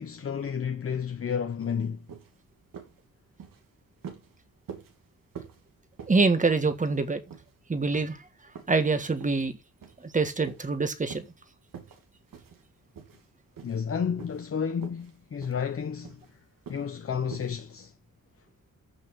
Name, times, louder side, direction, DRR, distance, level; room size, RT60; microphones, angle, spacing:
voice 1, 0.0-2.1 13.6-16.2 16.7-17.9, left 7 dB, 45° left, 1.0 m, -31 dB
sound 1, 1.6-1.7 2.1-2.4 2.7-3.0 3.3-3.6 4.0-4.3 4.7-5.0 5.4-5.6 6.0-6.3 6.7-7.0 7.3-7.5 7.9-8.1 8.6-8.8 9.2-9.4 9.8-10.1 10.5-10.7 11.1-11.3 11.7-12.0 12.3-12.6 12.9-13.3 13.6-13.9 14.2-14.5 14.8-15.1 15.4-15.6 16.0-16.3 16.7-16.9 17.3-17.6, right 7 dB, 85° right, 3.0 m, -45 dB
voice 2, 6.1-7.2 7.7-8.2 8.7-9.5 10.0-11.3, right 3 dB, 25° right, 1.7 m, -25 dB
14.5 x 6.0 x 5.9 m
wide cardioid pair, 150°, 33 cm